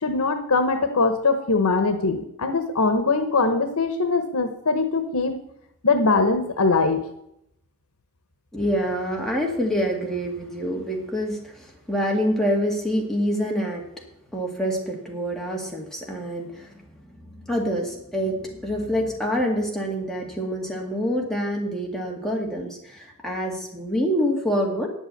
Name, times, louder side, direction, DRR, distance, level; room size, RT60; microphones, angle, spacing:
voice 1, 0.0-5.3 5.8-7.0, left 3 dB, 85° left, 8 dB, 1.1 m, -22 dB
voice 2, 8.5-13.8 14.3-16.7 17.4-24.9, equal, ahead, -1 dB, 2.0 m, -26 dB
10.0 x 8.1 x 7.9 m, 0.78 s
head